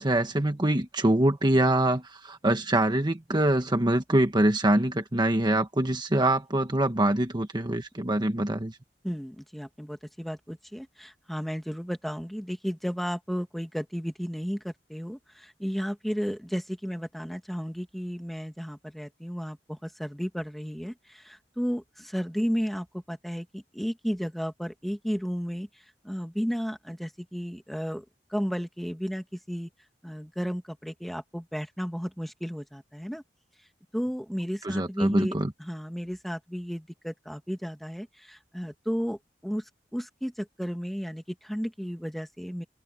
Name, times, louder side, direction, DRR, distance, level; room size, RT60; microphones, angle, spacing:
voice 1, 0.0-8.8 34.6-35.5, right 1 dB, 25° right, 1.3 m, -24 dB
voice 2, 9.0-25.7 26.0-28.0 28.3-29.7 30.0-33.2 33.9-39.6 39.9-42.6, equal, ahead, 2.0 m, -33 dB
open air
head